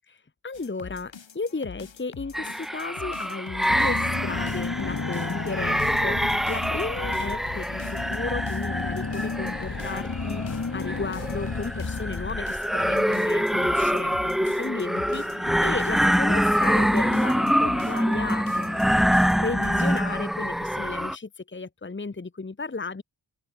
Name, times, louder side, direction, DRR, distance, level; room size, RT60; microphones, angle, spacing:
voice 1, 0.1-23.0, left 3 dB, 25° left, 1.3 m, -34 dB
sound 1, 0.5-20.0, left 6 dB, 75° left, 4.0 m, -44 dB
sound 2, 2.3-21.1, equal, ahead, 1.8 m, -25 dB
Car / Engine, 3.7-12.9, left 4 dB, 40° left, 5.4 m, -32 dB
open air
wide cardioid pair, 125°, 46 cm